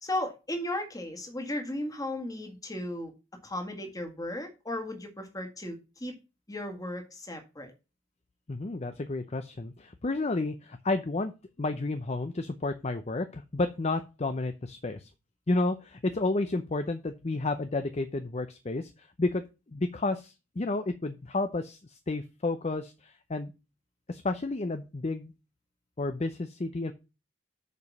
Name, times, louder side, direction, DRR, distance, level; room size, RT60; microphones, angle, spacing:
voice 1, 0.0-3.1 3.4-6.1 6.5-7.7, left 1 dB, 20° left, 4 dB, 1.8 m, -35 dB
voice 2, 8.5-11.3 11.6-15.1 15.5-19.4 19.7-23.5 24.1-25.3 26.0-26.9, left 2 dB, 35° left, 9 dB, 0.6 m, -31 dB
6.8 x 5.0 x 7.1 m, 0.29 s
head